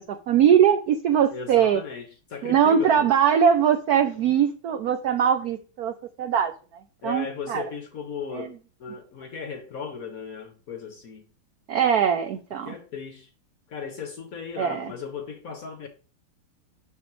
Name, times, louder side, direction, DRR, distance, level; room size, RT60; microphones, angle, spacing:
voice 1, 0.1-1.8 2.4-6.5 7.0-7.7 8.3-8.5 11.7-12.7 14.6-14.9, right 8 dB, 85° right, 0.8 m, -21 dB
voice 2, 1.3-3.1 7.0-8.5 8.8-11.3 12.7-13.3 13.7-15.9, left 6 dB, 60° left, 1.0 m, -36 dB
7.0 x 6.5 x 3.1 m
omnidirectional pair, 2.3 m